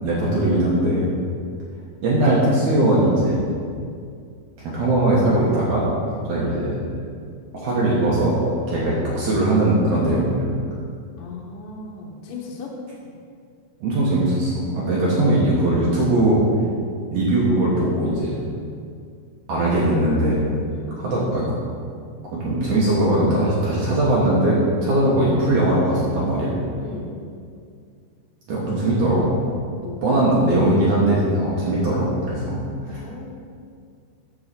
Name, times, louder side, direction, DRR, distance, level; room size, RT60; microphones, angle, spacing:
voice 1, 0.0-1.1 2.0-3.4 4.6-5.9 6.3-6.7 7.5-8.3 8.7-10.4 13.8-16.4 17.1-18.4 19.5-20.5 21.0-21.5 22.3-26.5 28.5-29.3 30.0-32.6 32.9-33.0, right 1 dB, 65° right, -7 dB, 2.3 m, -20 dB
voice 2, 11.2-12.7 20.7-21.1 26.8-27.2 29.8-30.8 32.8-33.3, left 4 dB, 70° left, -2 dB, 2.6 m, -37 dB
7.5 x 4.8 x 6.8 m, 2.3 s
omnidirectional pair, 4.3 m